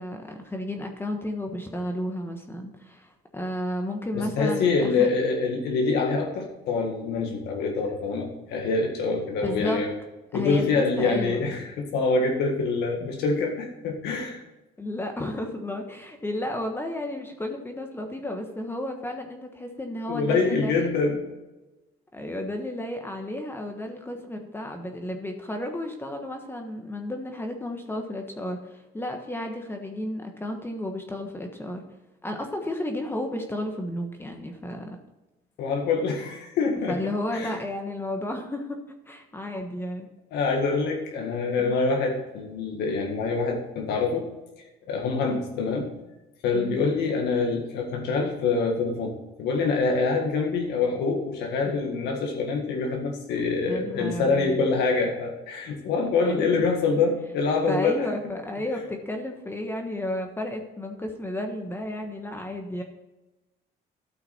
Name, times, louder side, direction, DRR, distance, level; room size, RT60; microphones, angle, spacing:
voice 1, 0.0-5.1 9.4-9.9 10.3-11.6 14.8-20.9 22.1-31.8 32.2-35.0 36.9-38.8 39.1-40.1 41.6-41.7 46.5-46.8 53.6-54.6 56.2-56.7 57.7-62.8, left 1 dB, 15° left, 3 dB, 1.2 m, -32 dB
voice 2, 4.1-9.9 10.3-14.4 20.1-21.2 35.6-37.0 37.3-37.5 40.3-44.3 44.9-45.9 46.4-49.1 49.4-58.1, left 4 dB, 80° left, 2 dB, 1.7 m, -25 dB
13.0 x 5.7 x 4.3 m, 1.0 s
cardioid pair, 110°, 17 cm